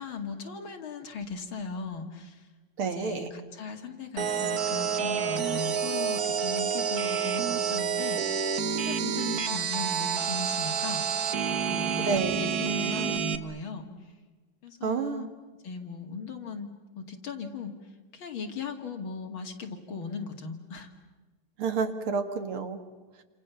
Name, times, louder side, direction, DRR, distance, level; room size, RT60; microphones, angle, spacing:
voice 1, 0.0-2.5 2.8-11.0 11.6-12.1 12.4-13.9 14.6-15.3 15.6-17.7 18.1-20.9, left 4 dB, 70° left, 4 dB, 3.1 m, -38 dB
voice 2, 2.8-3.3 12.0-12.4 14.8-15.3 21.6-22.8, right 5 dB, 85° right, 8 dB, 2.8 m, -29 dB
sound 1, 4.2-13.4, right 7 dB, 50° right, 1.6 m, -29 dB
29.0 x 27.5 x 7.1 m, 1.3 s
omnidirectional pair, 2.3 m